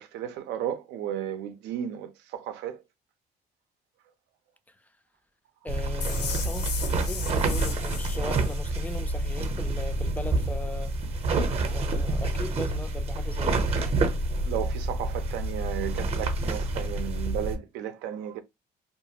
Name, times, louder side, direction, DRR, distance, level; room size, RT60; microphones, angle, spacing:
voice 1, 0.0-2.8 14.4-18.4, right 10 dB, 90° right, 0.5 m, -34 dB
voice 2, 5.6-6.7 7.0-10.9 11.7-13.7, left 2 dB, 10° left, 0.3 m, -38 dB
sound 1, 5.7-17.6, right 2 dB, 40° right, 0.7 m, -28 dB
sound 2, 6.0-9.0, left 7 dB, 75° left, 0.6 m, -37 dB
2.5 x 2.3 x 2.7 m
cardioid pair, 110°, 17 cm